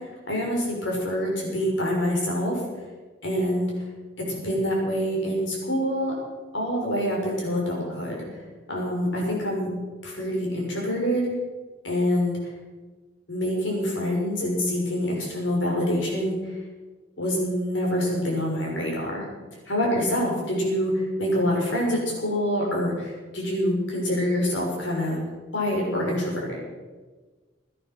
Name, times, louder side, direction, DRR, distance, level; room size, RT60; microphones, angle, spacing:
voice 1, 0.3-2.6 3.2-3.7 4.3-6.1 6.5-8.2 8.7-9.7 10.0-11.3 11.8-12.4 13.3-16.4 17.2-19.2 19.7-25.2 25.5-26.6, equal, 80° left, -2 dB, 6.1 m, -26 dB
17.0 x 11.0 x 6.1 m, 1.3 s
head